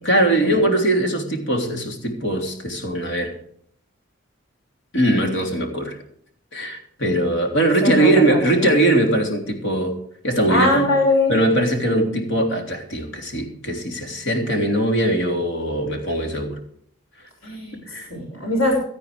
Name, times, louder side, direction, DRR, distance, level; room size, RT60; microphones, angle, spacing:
voice 1, 0.0-3.4 4.9-6.0 6.5-9.9 10.2-10.9 11.3-16.6 17.9-18.1, right 1 dB, 70° left, 2 dB, 3.3 m, -21 dB
voice 2, 7.8-8.7 10.5-11.4 17.4-17.8 18.1-18.8, left 1 dB, 85° left, 0 dB, 5.9 m, -21 dB
17.0 x 13.0 x 3.4 m, 0.64 s
head